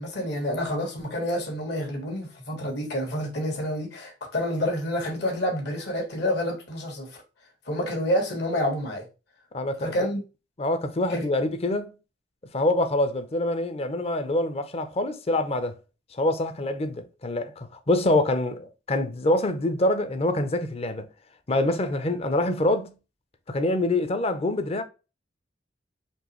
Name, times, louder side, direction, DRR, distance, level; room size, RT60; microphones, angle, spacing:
voice 1, 0.0-7.2 7.7-9.0 9.8-10.2 11.1-11.2, equal, 65° left, 1.5 m, -28 dB
voice 2, 9.5-9.9 10.6-11.9 12.5-15.7 16.1-21.1 21.5-22.9 23.5-24.8, left 1 dB, 35° left, 0.6 m, -25 dB
4.4 x 3.0 x 3.0 m
head